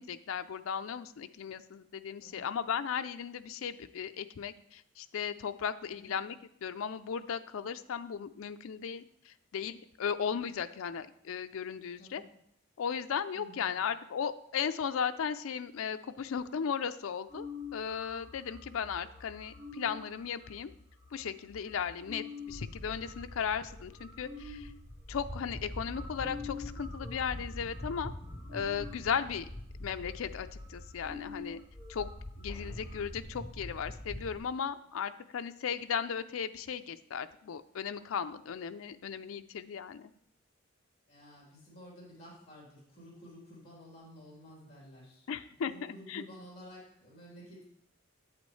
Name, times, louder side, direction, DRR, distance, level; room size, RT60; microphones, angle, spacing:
voice 1, 0.0-12.2 12.8-17.5 17.7-20.7 21.1-24.7 25.1-28.1 28.5-29.5 29.8-31.6 31.9-32.1 32.4-40.1 45.3-46.2, left 7 dB, 85° left, 10 dB, 0.4 m, -36 dB
voice 2, 13.3-13.8 41.1-45.3 45.7-47.6, equal, 30° left, -4 dB, 3.3 m, -52 dB
sound 1, 17.3-24.7 25.3-25.4 25.7-33.0, left 4 dB, 20° right, 2.8 m, -48 dB
sound 2, 22.5-34.4, left 1 dB, 15° left, 1.4 m, -44 dB
8.4 x 8.2 x 3.2 m, 0.71 s
head